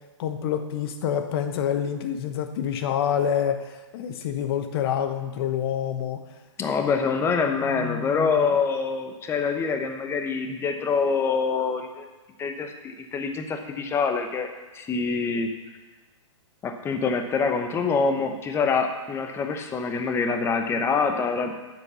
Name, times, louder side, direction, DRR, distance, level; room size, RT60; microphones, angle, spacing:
voice 1, 0.2-6.2 7.6-8.5, left 9 dB, 50° left, 7 dB, 1.1 m, -27 dB
voice 2, 6.6-12.1 12.4-14.5 14.7-15.5 16.6-21.5, left 5 dB, 15° left, 6 dB, 0.9 m, -25 dB
9.5 x 7.6 x 5.5 m, 1.2 s
hypercardioid pair, 140°, 16 cm